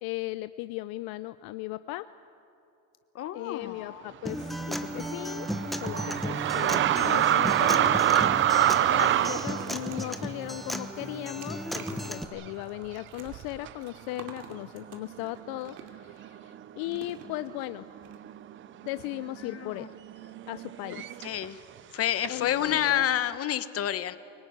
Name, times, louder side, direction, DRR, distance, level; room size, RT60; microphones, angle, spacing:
voice 1, 0.0-2.1 3.3-8.0 8.9-17.8 18.8-19.9 20.5-21.1 22.3-23.0, left 18 dB, 60° left, 13 dB, 0.6 m, -37 dB
voice 2, 3.1-4.0 7.0-7.6 19.4-19.9 20.9-21.6 21.9-24.2, left 11 dB, 35° left, 13 dB, 1.0 m, -30 dB
Acoustic guitar, 4.2-12.2, equal, ahead, 0.9 m, -35 dB
sound 1, 4.4-12.0 12.4-12.5 13.3-13.7 14.5-14.6 14.8-16.6 16.9-17.4 17.7-21.5 22.2-23.1, right 11 dB, 30° right, 0.5 m, -27 dB
sound 2, 7.4-16.2 16.9-17.7 18.0-18.2 18.4-18.5, right 7 dB, 75° right, 2.6 m, -49 dB
24.0 x 17.5 x 9.3 m, 2.7 s
supercardioid pair, 130°, 42 cm